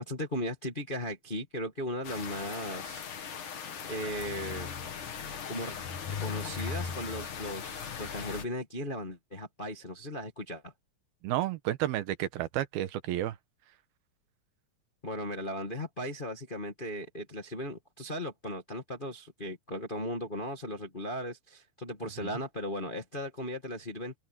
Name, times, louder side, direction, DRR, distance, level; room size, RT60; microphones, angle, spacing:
voice 1, 0.0-3.3 3.9-4.7 5.5-5.8 6.2-10.7 15.0-24.1, equal, 35° left, 0.8 m, -37 dB
sound 1, 2.0-8.4, left 6 dB, 55° left, 3.7 m, -38 dB
voice 2, 11.2-13.4 22.2-22.3, right 13 dB, 85° right, 3.0 m, -31 dB
open air
omnidirectional pair, 4.3 m